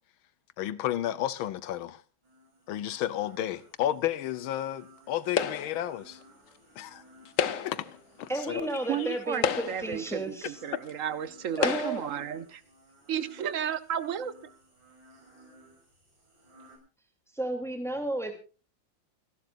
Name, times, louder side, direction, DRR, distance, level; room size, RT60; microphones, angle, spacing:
voice 1, 0.6-2.0 2.7-6.2 6.8-7.0 7.6-8.7 9.0-9.1, left 12 dB, 90° left, 1.7 m, -32 dB
sound 1, 2.2-16.8, right 1 dB, 70° right, 6.5 m, -57 dB
sound 2, 5.4-5.9 7.2-7.9 8.8-8.9 9.3-10.0 10.9-11.0 11.6-12.1, left 7 dB, 55° left, 1.0 m, -30 dB
voice 2, 8.3-10.6 11.6-12.0 17.3-18.3, right 1 dB, ahead, 2.8 m, -33 dB
voice 3, 8.9-12.6 13.1-14.3, right 9 dB, 50° right, 1.2 m, -33 dB
28.5 x 12.0 x 2.6 m
omnidirectional pair, 2.2 m